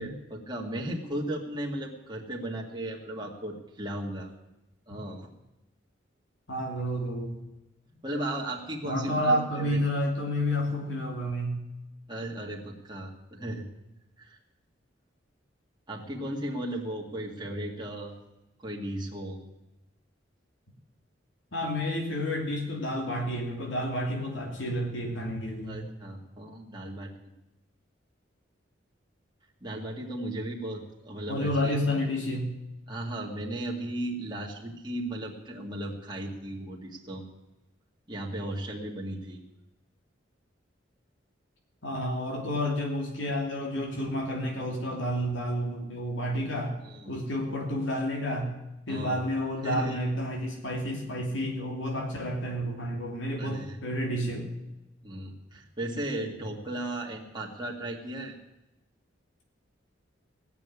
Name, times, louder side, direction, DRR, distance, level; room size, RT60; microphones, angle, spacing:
voice 1, 0.0-4.3 4.9-5.3 8.0-9.8 12.1-13.7 14.2-14.4 15.9-18.1 18.6-19.4 25.7-27.1 29.6-31.8 32.9-37.2 38.1-39.4 46.8-47.2 48.9-49.2 49.6-50.0 50.4-50.5 53.4-53.8 55.0-58.4, right 1 dB, 25° right, -2 dB, 2.0 m, -36 dB
voice 2, 6.5-7.4 8.8-11.6 21.5-25.8 31.3-32.5 41.8-46.8 47.1-48.5 48.9-54.5, equal, 80° left, 0 dB, 2.9 m, -30 dB
17.5 x 7.0 x 9.7 m, 0.93 s
head